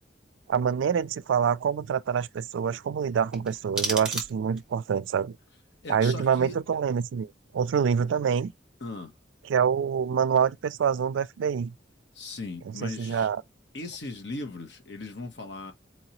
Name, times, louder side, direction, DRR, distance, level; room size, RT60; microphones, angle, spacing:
voice 1, 0.5-5.4 5.9-8.5 9.5-11.7 12.8-13.4, right 7 dB, 85° right, 0.3 m, -26 dB
sound 1, 3.3-4.8, right 2 dB, 5° right, 0.9 m, -33 dB
voice 2, 5.8-6.6 8.8-9.1 12.1-13.3 13.7-15.7, left 3 dB, 65° left, 0.9 m, -38 dB
4.4 x 2.8 x 2.9 m
head